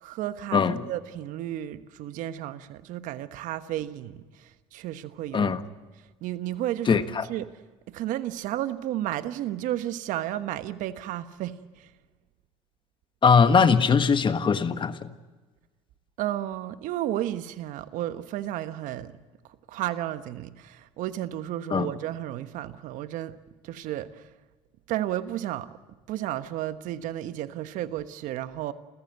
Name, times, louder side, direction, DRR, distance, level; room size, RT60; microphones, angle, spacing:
voice 1, 0.0-5.6 6.2-7.0 7.3-7.5 7.9-11.9 16.2-19.1 19.7-23.4 23.6-24.2 24.9-25.7 26.1-28.7, right 13 dB, 65° right, 1.2 m, -32 dB
voice 2, 0.5-0.8 5.3-5.6 6.9-7.3 13.2-15.0 21.7-21.9, left 5 dB, 35° left, 1.5 m, -21 dB
30.0 x 14.5 x 8.0 m
hypercardioid pair, 75°, 14 cm